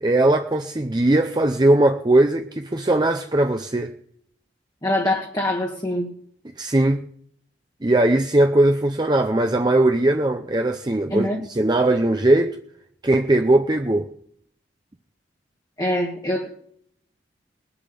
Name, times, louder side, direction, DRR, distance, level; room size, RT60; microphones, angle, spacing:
voice 1, 0.0-3.9 6.6-7.0 7.8-12.6 13.0-14.1, right 1 dB, 25° right, 0.6 m, -19 dB
voice 2, 4.8-6.1 11.1-11.4 15.8-16.5, left 1 dB, 20° left, 1.3 m, -24 dB
20.5 x 7.0 x 6.8 m
head